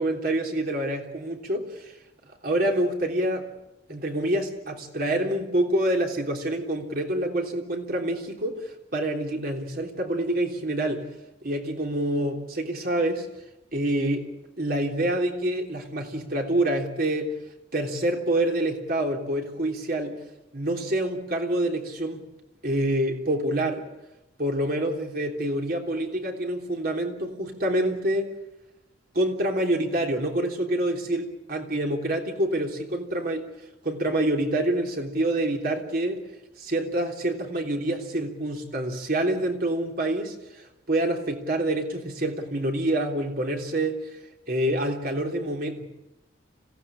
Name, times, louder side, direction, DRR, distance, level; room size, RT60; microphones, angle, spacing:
voice 1, 0.0-1.9 2.4-3.5 3.9-8.6 8.9-11.1 11.4-13.3 13.7-14.3 14.6-17.4 17.7-20.2 20.5-22.2 22.6-23.9 24.4-28.3 29.1-33.4 33.8-36.2 36.6-40.4 40.9-44.0 44.5-45.8, right 1 dB, 50° right, 2 dB, 3.4 m, -27 dB
26.5 x 17.0 x 8.8 m, 0.95 s
head